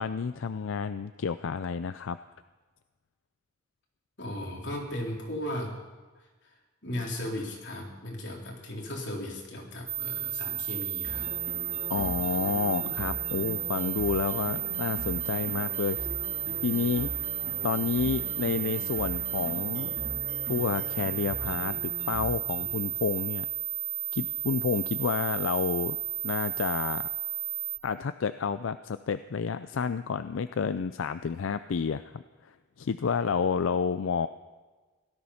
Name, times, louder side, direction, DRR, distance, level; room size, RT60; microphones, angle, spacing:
voice 1, 0.0-2.2 11.9-16.0 16.6-17.1 17.6-20.0 20.5-23.5 24.1-26.0 26.2-27.1 27.8-34.3, left 6 dB, 90° left, 12 dB, 0.5 m, -30 dB
voice 2, 4.2-5.8 6.8-11.3, left 1 dB, 65° left, -2 dB, 3.8 m, -36 dB
sound 1, 9.9-27.8, right 10 dB, 5° right, 0.7 m, -33 dB
sound 2, 11.0-23.0, equal, 70° right, 6.6 m, -40 dB
17.5 x 12.5 x 5.7 m, 1.3 s
head